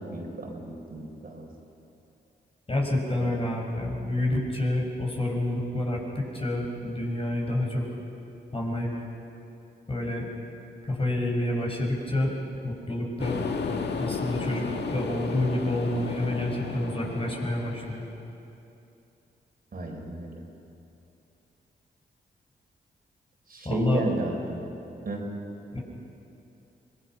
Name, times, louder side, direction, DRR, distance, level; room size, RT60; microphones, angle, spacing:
voice 1, 0.0-1.5 3.2-3.4 19.7-20.4 23.5-24.7 25.0-25.2, right 2 dB, 55° right, 0 dB, 4.4 m, -33 dB
voice 2, 2.7-7.8 8.5-8.9 9.9-10.3 10.9-12.3 12.6-13.4 14.0-14.7 14.9-18.1 23.6-24.0 25.7-25.8, left 1 dB, 30° left, -1 dB, 5.7 m, -28 dB
sound 1, 13.2-18.1, left 4 dB, 70° left, 1.6 m, -33 dB
25.0 x 19.5 x 5.9 m, 2.8 s
cardioid pair, 55°, 18 cm